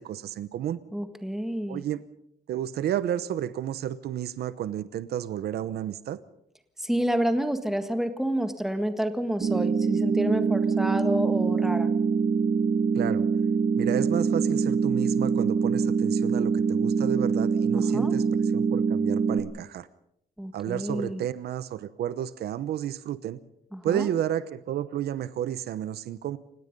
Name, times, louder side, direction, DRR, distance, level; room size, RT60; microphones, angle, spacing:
voice 1, 0.0-0.8 1.7-2.0 2.5-6.2 12.9-13.2 13.8-18.3 18.5-19.9 20.5-23.4 23.8-26.4, right 10 dB, 75° right, 15 dB, 1.0 m, -31 dB
voice 2, 0.9-1.8 6.8-11.9 17.7-18.1 20.4-21.2 23.7-24.1, equal, ahead, 7 dB, 1.7 m, -29 dB
sound 1, 9.4-19.4, right 5 dB, 45° right, 1.9 m, -24 dB
29.0 x 17.5 x 5.4 m, 0.72 s
cardioid pair, 160°, 17 cm